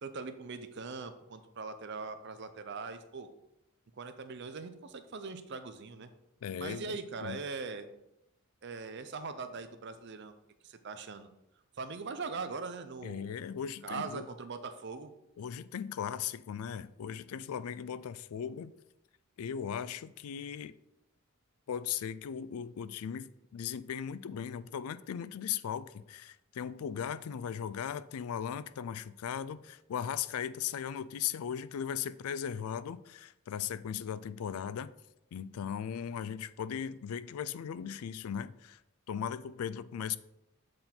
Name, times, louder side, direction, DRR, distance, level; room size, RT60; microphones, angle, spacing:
voice 1, 0.0-3.3 4.0-6.1 6.6-7.9 8.6-10.4 10.6-11.3 11.8-13.3 13.8-15.1, right 4 dB, 55° right, 0.6 m, -41 dB
voice 2, 6.4-7.4 13.0-14.3 15.4-18.7 19.4-20.8 21.7-34.9 35.3-38.8 39.1-40.2, left 8 dB, 90° left, 0.4 m, -38 dB
7.8 x 3.8 x 4.3 m
head